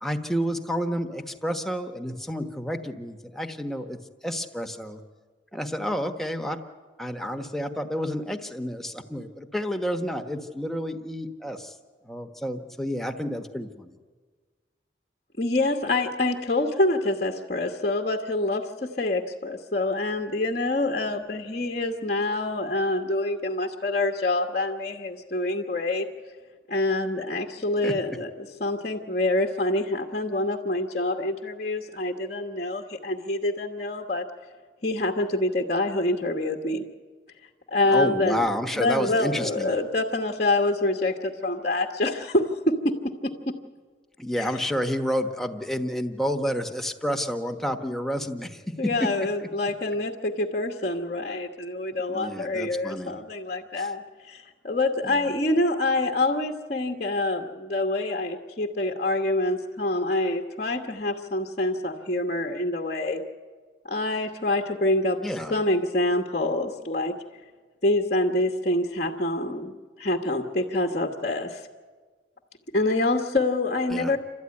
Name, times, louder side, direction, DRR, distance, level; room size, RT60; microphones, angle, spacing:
voice 1, 0.0-5.0 5.5-6.6 7.0-11.7 12.0-13.9 27.8-28.0 37.8-39.7 44.2-49.3 52.1-53.2 53.8-53.9 55.0-55.2 65.2-65.6 73.9-74.1, equal, ahead, 4 dB, 1.2 m, -30 dB
voice 2, 15.4-26.1 26.7-34.2 34.8-36.8 37.7-38.4 38.7-43.5 48.8-63.2 63.8-65.2 65.5-67.1 67.8-69.7 70.0-71.7 72.7-74.2, left 2 dB, 40° left, 3 dB, 1.3 m, -26 dB
29.0 x 13.0 x 9.7 m, 1.5 s
head